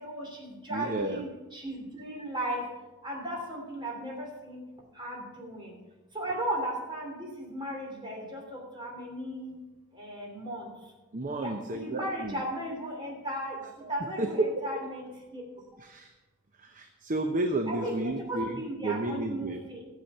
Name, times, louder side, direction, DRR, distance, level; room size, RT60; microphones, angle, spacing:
voice 1, 0.0-2.7 3.0-4.6 4.9-5.8 6.1-9.6 9.9-10.7 11.4-15.4 17.7-19.8, right 1 dB, 20° right, -1 dB, 3.0 m, -36 dB
voice 2, 0.7-1.2 11.1-12.4 13.6-13.7 14.0-14.6 15.8-16.1 16.6-19.7, right 2 dB, 35° right, 5 dB, 0.7 m, -32 dB
13.5 x 7.5 x 5.5 m, 1.1 s
head